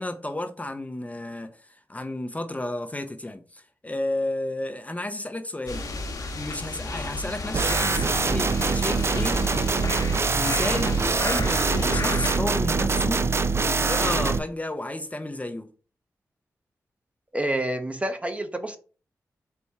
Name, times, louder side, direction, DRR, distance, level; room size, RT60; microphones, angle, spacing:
voice 1, 0.0-5.8 6.3-9.4 10.3-13.2 13.6-15.7, left 1 dB, 20° left, 0.6 m, -32 dB
sound 1, 5.7-12.4, left 3 dB, 65° left, 1.0 m, -33 dB
sound 2, 7.5-14.4, right 4 dB, 40° right, 0.4 m, -24 dB
voice 2, 17.3-18.8, right 1 dB, 20° right, 0.8 m, -28 dB
4.2 x 2.3 x 4.5 m
cardioid pair, 45°, 7 cm